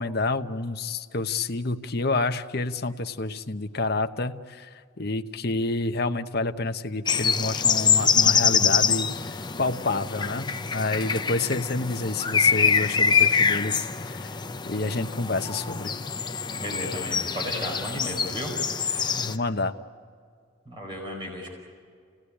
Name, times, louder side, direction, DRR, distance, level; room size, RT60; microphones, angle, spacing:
voice 1, 0.0-4.7 5.0-9.1 9.6-14.3 14.7-15.9 19.2-19.7, left 3 dB, 50° left, 7 dB, 1.0 m, -28 dB
sound 1, 7.1-19.4, left 6 dB, 20° left, 0.7 m, -25 dB
voice 2, 16.6-19.3 20.6-21.5, equal, 25° right, 0 dB, 4.9 m, -35 dB
28.5 x 18.0 x 9.9 m, 2.2 s
head